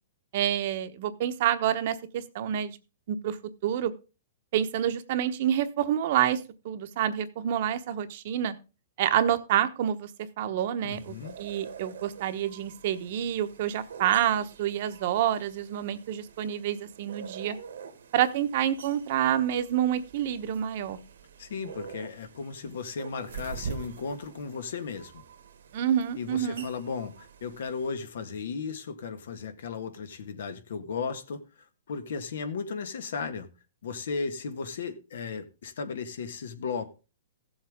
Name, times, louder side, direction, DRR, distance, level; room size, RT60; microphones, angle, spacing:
voice 1, 0.3-2.8 3.1-3.4 3.6-3.9 4.5-8.6 9.0-10.1 10.4-17.6 18.1-21.0 25.7-26.7, right 10 dB, 50° right, 1.1 m, -28 dB
voice 2, 10.8-11.4 21.4-25.2 26.2-33.5 33.8-36.9, left 5 dB, 75° left, 1.6 m, -35 dB
sound 1, 10.9-27.9, right 6 dB, 80° right, 1.6 m, -45 dB
15.5 x 7.3 x 3.7 m
hypercardioid pair, 145°, 0 cm